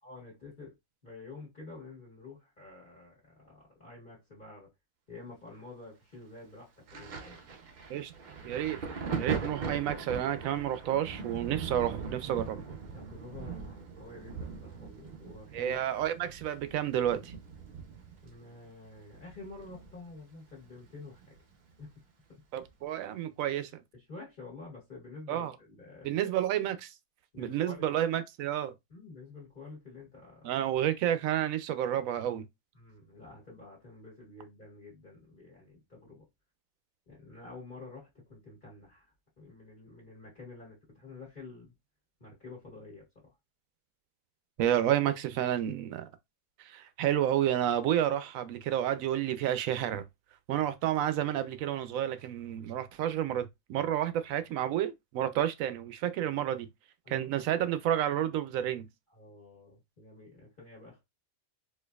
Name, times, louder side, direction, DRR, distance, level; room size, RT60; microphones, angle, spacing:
voice 1, 0.0-0.7 1.0-4.7 5.1-7.4 12.9-15.8 18.2-21.3 21.8-21.9 22.3-22.4 23.9-26.2 27.3-27.8 28.9-30.5 32.7-36.3 37.1-41.7 42.2-43.1 57.0-57.3 59.1-61.0, left 3 dB, 35° left, 1.4 m, -49 dB
Thunder, 6.9-20.2 20.5-21.8 22.7-22.8, right 5 dB, 55° right, 0.5 m, -41 dB
voice 2, 8.4-8.8 9.2-12.6 15.5-17.3 22.5-23.7 25.3-25.5 26.0-26.9 27.4-28.7 30.4-32.4 44.6-46.1 46.6-50.1 50.5-56.7 57.1-58.9, right 11 dB, 70° right, 0.9 m, -30 dB
4.5 x 2.5 x 2.3 m
omnidirectional pair, 1.5 m